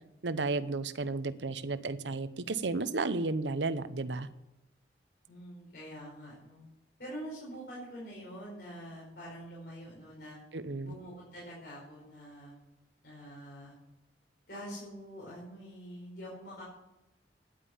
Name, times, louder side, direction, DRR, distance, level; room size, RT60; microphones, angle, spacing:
voice 1, 0.2-4.3 10.5-11.0, right 3 dB, 85° right, 13 dB, 0.8 m, -33 dB
voice 2, 5.3-6.6 7.0-10.4 10.8-12.6 13.0-13.8 14.5-16.6, equal, 60° left, -6 dB, 5.0 m, -45 dB
10.5 x 9.0 x 8.5 m, 0.95 s
head